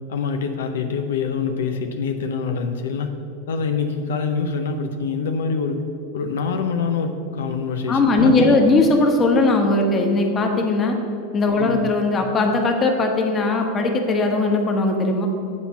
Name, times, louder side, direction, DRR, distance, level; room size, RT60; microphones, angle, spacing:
voice 1, 0.1-3.1 3.5-5.8 6.1-8.6 11.5-11.9, left 5 dB, 85° left, 6 dB, 0.6 m, -25 dB
voice 2, 7.9-11.0 11.3-15.3, left 2 dB, 25° left, 2 dB, 1.2 m, -19 dB
8.1 x 4.3 x 6.9 m, 2.8 s
hypercardioid pair, 115°, 0 cm